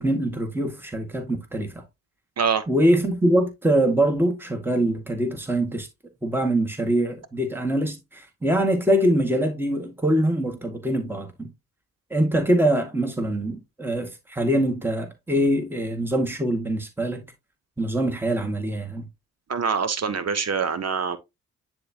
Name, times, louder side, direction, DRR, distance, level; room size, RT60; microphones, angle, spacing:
voice 1, 0.0-1.7 2.7-5.9 6.2-11.5 12.1-17.2 17.8-19.1, right 1 dB, 5° right, 1.9 m, -23 dB
voice 2, 19.5-21.2, right 6 dB, 50° right, 1.1 m, -24 dB
9.8 x 3.6 x 2.9 m
supercardioid pair, 45°, 34 cm